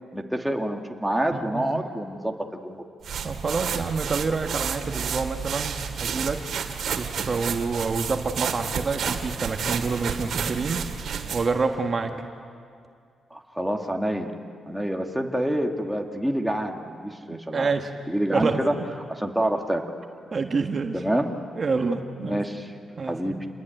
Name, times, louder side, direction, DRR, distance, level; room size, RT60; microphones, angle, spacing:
voice 1, 0.1-2.8 13.3-14.3 14.7-17.7 18.1-18.7 19.1-19.8 20.9-21.3 22.2-22.7 23.1-23.4, right 1 dB, 5° right, 2 dB, 2.1 m, -27 dB
voice 2, 1.3-1.8 3.2-6.6 6.8-10.8 11.1-12.1 17.3-17.9 18.3-18.8 20.3-21.0 21.6-22.4 23.0-23.4, right 4 dB, 40° right, 4 dB, 1.5 m, -28 dB
sound 1, 3.0-11.6, right 7 dB, 70° right, 2.2 m, -31 dB
28.5 x 21.5 x 9.2 m, 2.3 s
cardioid pair, 105°, 0 cm